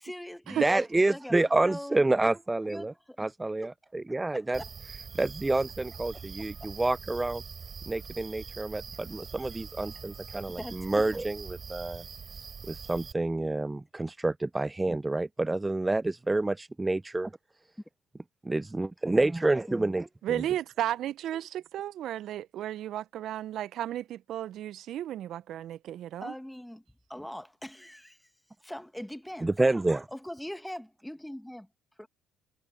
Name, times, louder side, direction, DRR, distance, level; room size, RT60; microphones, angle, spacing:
voice 1, 0.0-1.3 1.6-2.1 2.7-3.3 4.3-4.7 6.6-6.7 10.6-11.1 19.7-20.0 26.2-26.8 27.1-28.3 28.6-29.5 30.1-31.7 32.0-32.1, left 1 dB, 5° left, 1.6 m, -41 dB
voice 2, 0.6-2.9 3.2-4.6 5.2-7.4 7.9-12.0 12.7-17.3 18.4-20.4 29.4-30.0, right 2 dB, 15° right, 0.5 m, -28 dB
sound 1, 4.5-13.1, right 6 dB, 40° right, 4.8 m, -44 dB
voice 3, 20.2-26.3, right 12 dB, 65° right, 0.8 m, -34 dB
hypercardioid pair, 60°, 0 cm